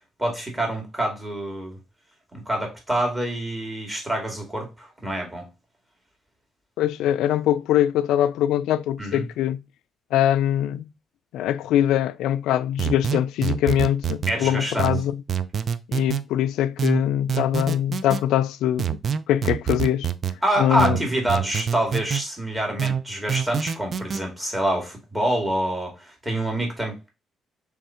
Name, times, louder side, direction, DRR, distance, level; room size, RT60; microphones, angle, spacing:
voice 1, 0.2-1.8 2.3-5.5 9.0-9.2 14.3-14.9 20.4-27.1, right 1 dB, 15° right, 2.1 m, -26 dB
voice 2, 6.8-9.6 10.1-10.8 11.3-15.2 15.9-19.0 19.3-20.1 20.6-21.0, left 11 dB, 90° left, 0.3 m, -22 dB
sound 1, 12.8-14.4 14.8-16.2 16.8-18.2 18.8-20.4 20.8-22.2 22.8-24.2, right 8 dB, 50° right, 0.4 m, -26 dB
3.5 x 3.4 x 4.2 m
cardioid pair, 90°, 0 cm